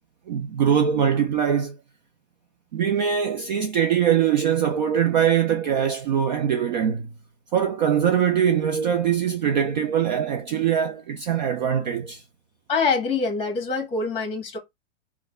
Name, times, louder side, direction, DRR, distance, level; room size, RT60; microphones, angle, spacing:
voice 1, 0.3-1.8 2.7-7.1 7.5-12.2, right 8 dB, 40° right, 0.4 m, -22 dB
voice 2, 12.7-14.6, left 4 dB, 15° left, 1.3 m, -25 dB
3.2 x 2.2 x 3.5 m
hypercardioid pair, 150°, 37 cm